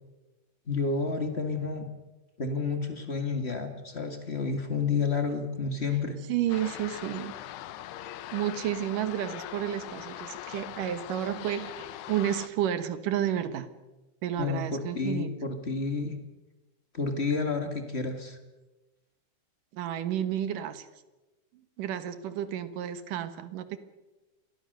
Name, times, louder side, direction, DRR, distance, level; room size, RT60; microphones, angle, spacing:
voice 1, 0.7-1.9 2.4-6.2 14.4-16.2 16.9-18.4, left 4 dB, 60° left, 6 dB, 0.6 m, -30 dB
voice 2, 6.3-7.3 8.3-13.7 14.2-15.3 19.7-20.9 21.8-23.8, right 10 dB, 60° right, 11 dB, 2.7 m, -31 dB
sound 1, 6.5-12.5, left 12 dB, 80° left, 3.0 m, -41 dB
29.0 x 22.0 x 6.7 m, 1.1 s
omnidirectional pair, 4.7 m